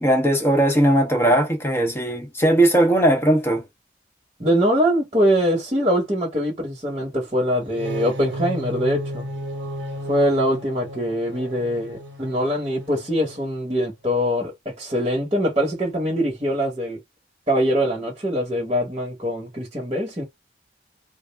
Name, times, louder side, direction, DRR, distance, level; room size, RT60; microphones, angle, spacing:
voice 1, 0.0-3.6, right 1 dB, 15° left, 0.7 m, -18 dB
voice 2, 4.4-9.3 10.1-17.0 17.5-20.2, equal, 30° right, 0.9 m, -23 dB
sound 1, 7.6-13.6, equal, 75° right, 0.8 m, -34 dB
2.4 x 2.0 x 3.3 m
head